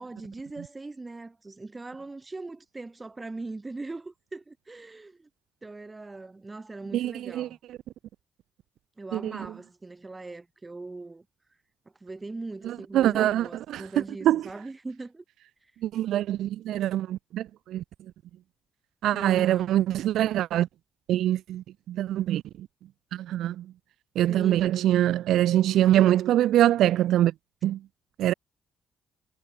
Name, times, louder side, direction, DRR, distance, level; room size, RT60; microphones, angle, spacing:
voice 1, 0.0-5.3 5.6-7.6 9.0-11.2 12.0-15.2 19.1-19.7 24.3-24.7, right 3 dB, 20° right, 6.7 m, -40 dB
voice 2, 6.9-7.5 9.1-9.5 12.6-13.8 14.2-14.4 15.8-17.8 19.0-20.7 21.1-22.7 23.1-23.7 24.2-27.3 27.6-27.8 28.2-28.3, right 12 dB, 80° right, 0.5 m, -24 dB
cardioid pair, 90°, 0 cm